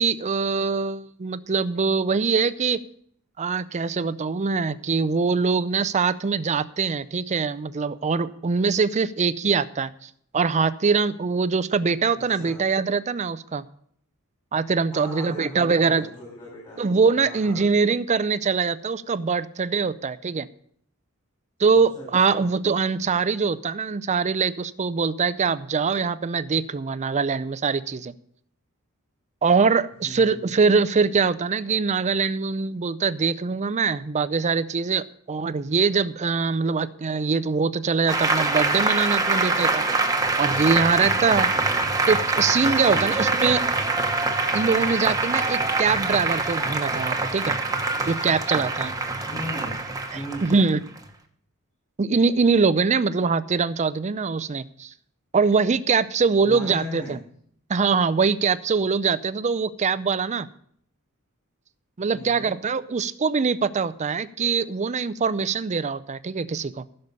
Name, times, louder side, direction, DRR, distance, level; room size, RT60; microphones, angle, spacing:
voice 1, 0.0-2.8 3.4-13.6 14.5-16.1 16.8-20.5 21.6-28.1 29.4-39.8 40.4-41.5 42.1-43.6 44.5-47.6 48.1-48.9 50.1-50.8 52.0-54.9 55.3-57.2 57.7-60.5 62.0-66.8, right 5 dB, 30° right, 16 dB, 0.5 m, -23 dB
voice 2, 12.3-12.6 14.9-16.8 17.2-17.6 21.9-22.4 30.0-30.5 41.1-41.5 42.7-43.1 49.3-49.8 50.1-50.5 56.4-57.2 62.1-62.5, equal, 25° left, -4 dB, 4.4 m, -38 dB
Applause, 38.1-51.1, right 3 dB, 15° right, 1.1 m, -24 dB
15.5 x 6.6 x 5.3 m, 0.65 s
head